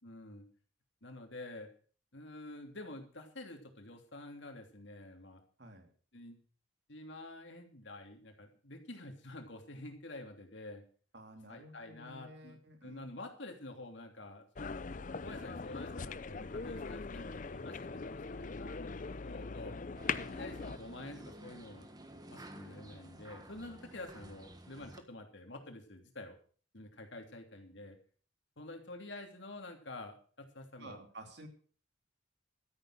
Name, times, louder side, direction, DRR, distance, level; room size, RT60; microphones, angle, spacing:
voice 1, 0.0-0.5 1.0-1.7 2.1-5.4 6.1-6.4 6.9-10.8 11.5-14.7 15.1-19.8 20.0-21.9 22.3-26.4 26.7-28.0 28.6-31.0, left 2 dB, 65° left, 4 dB, 2.9 m, -48 dB
voice 2, 5.6-5.9 11.1-13.0 30.8-31.5, right 1 dB, 55° right, 5 dB, 2.9 m, -52 dB
sound 1, 14.6-20.8, left 4 dB, 40° left, 0.5 m, -41 dB
sound 2, 20.0-25.0, right 1 dB, 20° right, 1.5 m, -52 dB
13.0 x 10.5 x 6.4 m, 0.43 s
head